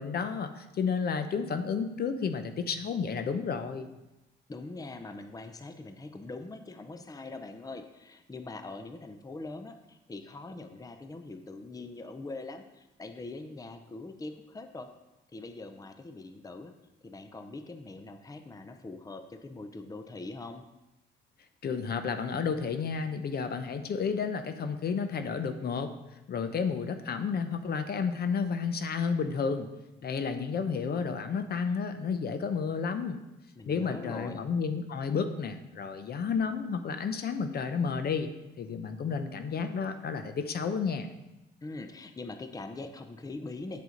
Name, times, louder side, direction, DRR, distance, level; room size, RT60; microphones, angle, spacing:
voice 1, 0.0-3.9 21.6-25.9 26.3-29.7 30.0-33.2 33.7-38.3 38.6-41.1, left 5 dB, 55° left, 8 dB, 0.7 m, -31 dB
voice 2, 4.5-14.9 15.3-16.7 17.0-20.6 33.6-34.5 41.6-43.8, left 2 dB, 20° left, 8 dB, 0.7 m, -42 dB
8.0 x 6.8 x 3.9 m, 0.96 s
cardioid pair, 90°, 20 cm